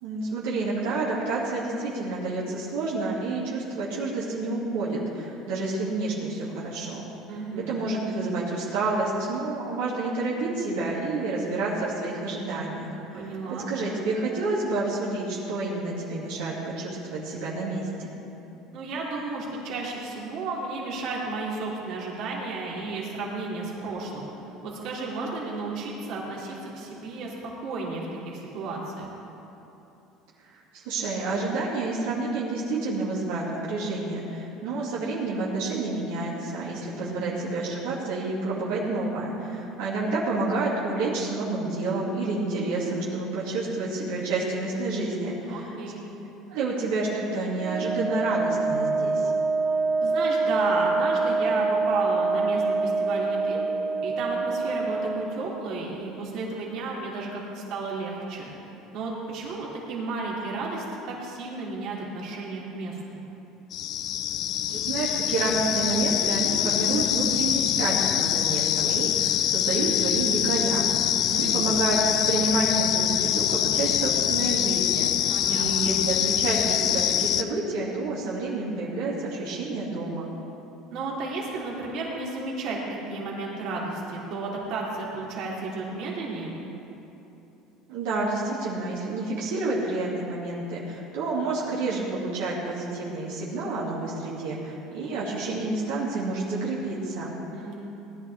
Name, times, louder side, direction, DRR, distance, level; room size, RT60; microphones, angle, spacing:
voice 1, 0.0-7.0 7.6-18.1 30.7-45.7 46.5-49.3 64.7-70.9 71.3-80.3 87.9-97.3, right 3 dB, 85° right, -7 dB, 2.6 m, -29 dB
voice 2, 7.3-7.8 13.1-13.7 18.7-24.3 24.6-27.4 27.6-29.1 37.0-37.5 45.5-46.1 50.0-53.6 54.0-58.5 58.9-63.2 71.1-71.6 75.3-75.9 80.9-82.8 83.1-86.5 97.5-97.8, right 3 dB, 65° right, -4 dB, 3.1 m, -33 dB
Wind instrument woodwind instrument, 47.6-55.4, right 3 dB, 25° right, 1.1 m, -26 dB
sound 1, 63.7-77.4, left 11 dB, 55° left, 0.6 m, -25 dB
18.5 x 11.0 x 3.6 m, 3.0 s
supercardioid pair, 120°, 0 cm